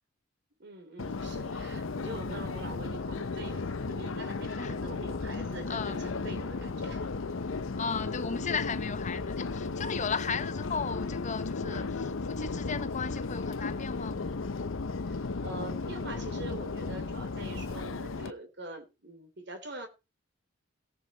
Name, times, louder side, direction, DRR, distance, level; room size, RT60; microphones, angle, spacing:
voice 1, 0.6-7.1 10.3-10.4 11.6-11.9 15.0-19.9, right 2 dB, 60° right, 3.3 m, -44 dB
Subway metro underground, 1.0-18.3, left 3 dB, 85° left, 0.7 m, -35 dB
voice 2, 5.7-6.0 7.8-14.4, left 5 dB, 35° left, 0.7 m, -35 dB
18.0 x 6.3 x 4.4 m
head